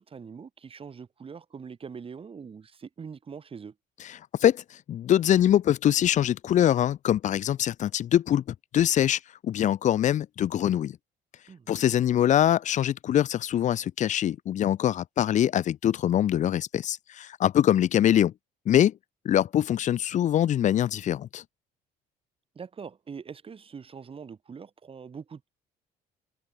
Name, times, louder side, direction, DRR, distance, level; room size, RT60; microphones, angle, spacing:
voice 1, 0.0-3.7 11.5-11.8 22.5-25.5, right 6 dB, 35° right, 3.2 m, -43 dB
voice 2, 4.0-4.6 4.9-8.4 8.7-11.0 11.7-18.3 18.7-18.9 19.2-21.4, left 11 dB, 45° left, 0.5 m, -23 dB
cardioid pair, 110°, 17 cm